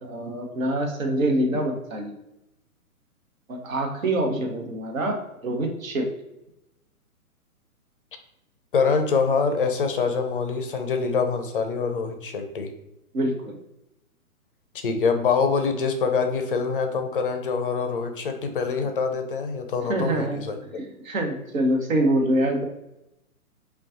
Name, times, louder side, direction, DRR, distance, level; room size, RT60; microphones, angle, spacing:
voice 1, 0.0-2.1 3.5-6.1 13.1-13.5 19.9-20.4 20.7-22.6, right 1 dB, 60° right, 3 dB, 1.0 m, -25 dB
voice 2, 8.7-12.7 14.7-20.6, left 5 dB, 40° left, 6 dB, 0.5 m, -25 dB
5.2 x 2.3 x 2.5 m, 0.88 s
figure-of-eight pair, 130°, 45 cm